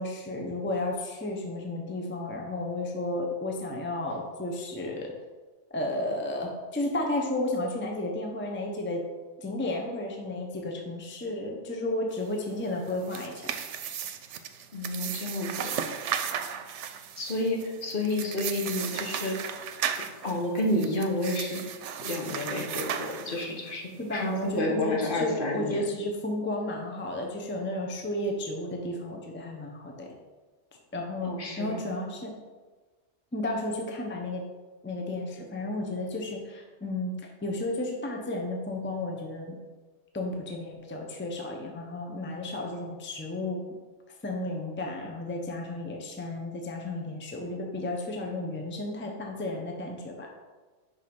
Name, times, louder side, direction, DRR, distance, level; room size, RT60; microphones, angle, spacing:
voice 1, 0.0-5.1 5.7-9.0 9.4-13.5 24.0-30.1 30.9-32.3 33.3-34.4 34.8-37.1 37.4-39.6 40.1-43.6 44.2-50.3, left 1 dB, 10° left, 0 dB, 0.7 m, -33 dB
sound 1, 12.8-23.7, right 8 dB, 85° right, 0.9 m, -35 dB
voice 2, 14.7-15.7 17.2-19.4 20.2-21.6 22.0-25.9 31.2-31.8, left 1 dB, 50° left, -1 dB, 1.2 m, -30 dB
5.5 x 5.0 x 5.3 m, 1.3 s
omnidirectional pair, 1.2 m